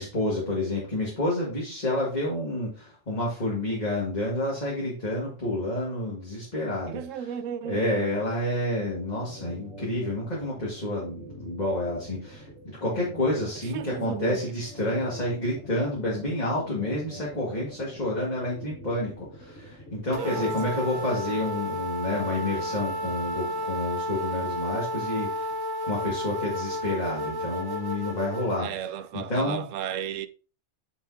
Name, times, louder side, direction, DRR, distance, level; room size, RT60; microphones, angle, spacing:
voice 1, 0.0-7.3 7.6-25.5 25.8-28.7 29.1-29.6, left 1 dB, 35° left, 2.0 m, -29 dB
voice 2, 6.9-8.1 13.7-14.5 20.1-20.8 28.6-30.3, right 9 dB, 80° right, 0.9 m, -35 dB
sound 1, 8.9-23.6, equal, 80° left, 2.5 m, -45 dB
sound 2, 20.1-28.6, equal, 20° right, 0.8 m, -32 dB
8.4 x 5.4 x 2.7 m
omnidirectional pair, 1.3 m